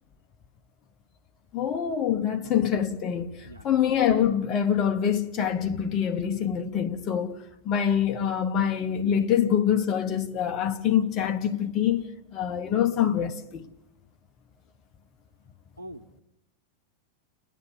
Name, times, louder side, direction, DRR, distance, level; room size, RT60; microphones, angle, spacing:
voice 1, 1.5-7.4 7.6-13.7, left 9 dB, 30° left, 1.0 m, -25 dB
voice 2, 15.8-16.2, right 1 dB, 90° left, 0.9 m, -43 dB
29.5 x 10.0 x 9.0 m
figure-of-eight pair, 90°, 0 cm